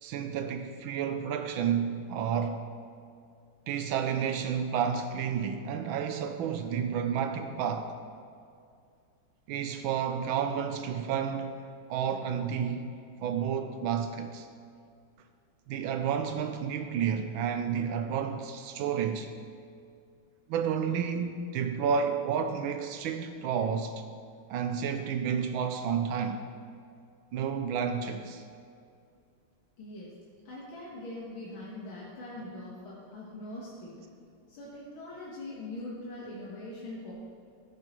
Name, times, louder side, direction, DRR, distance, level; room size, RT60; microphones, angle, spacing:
voice 1, 0.0-2.6 3.7-8.0 9.5-11.6 11.9-14.5 15.7-19.3 20.5-24.0 24.5-26.5 27.3-28.4, right 7 dB, 80° right, 7 dB, 1.4 m, -31 dB
voice 2, 29.8-30.1 30.5-34.0 34.5-37.1, left 1 dB, 85° left, -6 dB, 2.2 m, -42 dB
13.0 x 9.3 x 3.0 m, 2.3 s
omnidirectional pair, 2.2 m